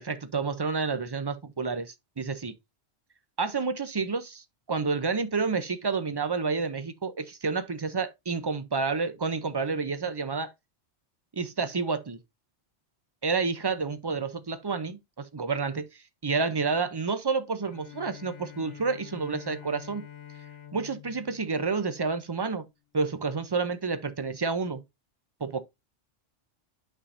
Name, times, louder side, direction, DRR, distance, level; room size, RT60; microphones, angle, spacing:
voice 1, 0.0-2.5 3.4-10.5 11.4-12.2 13.2-15.9 16.2-20.1 20.7-22.6 22.9-24.8 25.4-25.6, right 4 dB, 30° right, 0.5 m, -29 dB
Bowed string instrument, 17.6-22.6, left 9 dB, 80° left, 1.4 m, -47 dB
8.6 x 5.7 x 2.6 m
omnidirectional pair, 1.2 m